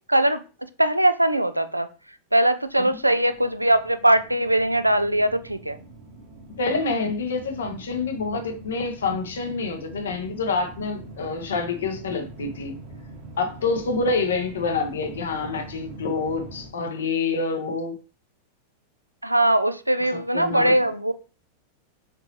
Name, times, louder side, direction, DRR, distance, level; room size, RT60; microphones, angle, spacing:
voice 1, 0.1-0.4 0.8-1.9 2.3-5.8 19.2-21.1, right 1 dB, 85° right, 0.4 m, -21 dB
sound 1, 2.7-16.7, right 2 dB, 45° right, 1.1 m, -43 dB
voice 2, 6.5-12.8 13.4-17.9 20.3-20.9, left 4 dB, 65° left, 0.9 m, -27 dB
4.4 x 3.8 x 3.0 m
figure-of-eight pair, 90°, 0 cm